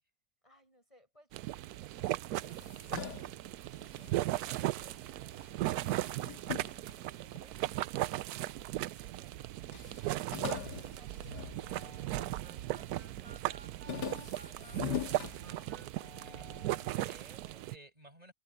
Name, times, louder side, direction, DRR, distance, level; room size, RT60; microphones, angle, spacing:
voice 1, 0.4-6.1 6.6-9.6 10.4-11.5 11.7-15.2, left 1 dB, 20° left, 6.6 m, -65 dB
sound 1, 1.3-17.8, right 15 dB, 70° right, 1.0 m, -37 dB
sound 2, 2.3-5.0 5.3-7.8 8.4-9.1 9.4-9.5 9.7-12.3 12.7-13.1 13.5-16.1, left 6 dB, 75° left, 2.2 m, -42 dB
sound 3, 11.6-17.1, right 2 dB, 50° right, 2.9 m, -55 dB
voice 2, 16.9-18.3, right 1 dB, 20° right, 6.1 m, -57 dB
omnidirectional pair, 1.8 m